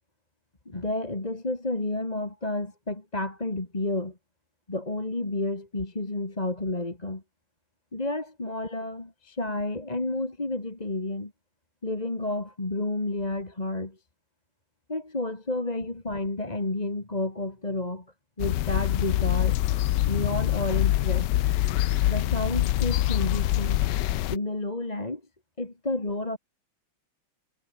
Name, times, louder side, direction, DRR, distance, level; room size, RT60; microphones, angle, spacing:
voice 1, 0.7-4.2 4.7-7.2 7.9-11.3 11.8-14.0 14.9-18.1 18.4-19.6 20.1-21.3 22.1-23.8 24.3-25.2 25.6-26.4, left 2 dB, 20° left, 2.5 m, -30 dB
Chapinhar Lago Patos, 18.4-24.4, left 14 dB, 70° left, 1.1 m, -25 dB
omnidirectional pair, 2.3 m